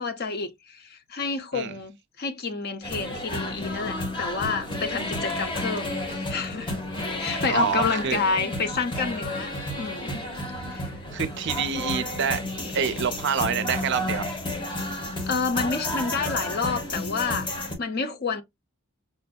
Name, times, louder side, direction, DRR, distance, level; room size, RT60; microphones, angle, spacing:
voice 1, 0.0-6.7 7.2-9.5 9.8-10.3 10.7-10.9 15.3-18.4, left 4 dB, 45° left, 0.6 m, -29 dB
sound 1, 2.8-17.7, left 1 dB, 20° left, 0.9 m, -31 dB
voice 2, 7.5-8.2 11.1-12.4 12.7-14.3, right 6 dB, 50° right, 0.4 m, -27 dB
5.5 x 2.6 x 2.2 m
head